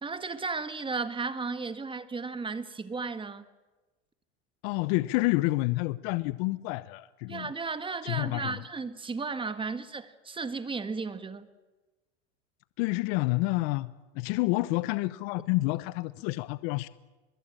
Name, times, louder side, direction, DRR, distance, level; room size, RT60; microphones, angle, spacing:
voice 1, 0.0-3.4 7.3-11.5, right 4 dB, 15° right, 1.7 m, -34 dB
voice 2, 4.6-7.5 8.0-8.6 12.8-16.9, left 21 dB, 55° left, 0.9 m, -29 dB
23.5 x 21.5 x 8.9 m
supercardioid pair, 115°, 36 cm